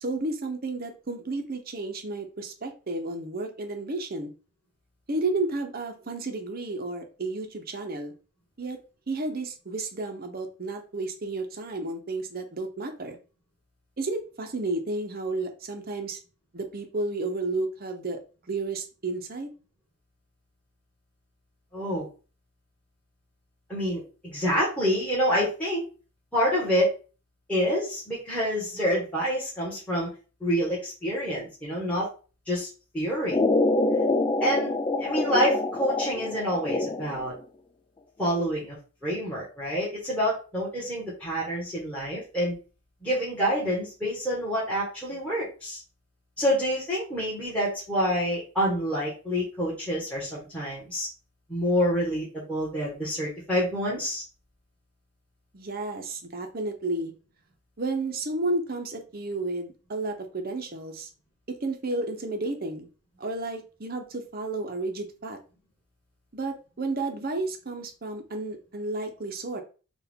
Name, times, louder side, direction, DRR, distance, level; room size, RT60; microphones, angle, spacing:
voice 1, 0.0-4.3 5.1-8.1 8.6-8.8 9.1-13.2 14.0-16.2 16.5-18.2 18.5-19.5 55.5-57.1 57.8-61.1 61.5-62.9 63.2-65.4 66.3-69.6, right 2 dB, 40° right, 5 dB, 0.8 m, -32 dB
voice 2, 21.7-22.1 23.7-25.8 26.3-26.9 27.5-30.1 30.4-32.1 32.5-32.7 32.9-33.4 34.4-37.3 38.2-38.7 39.0-42.6 43.0-45.8 46.4-51.1 51.5-54.2, equal, 5° left, -7 dB, 1.4 m, -27 dB
sound 1, 33.3-37.3, left 2 dB, 20° left, 0.3 m, -26 dB
4.6 x 2.5 x 3.6 m, 0.35 s
head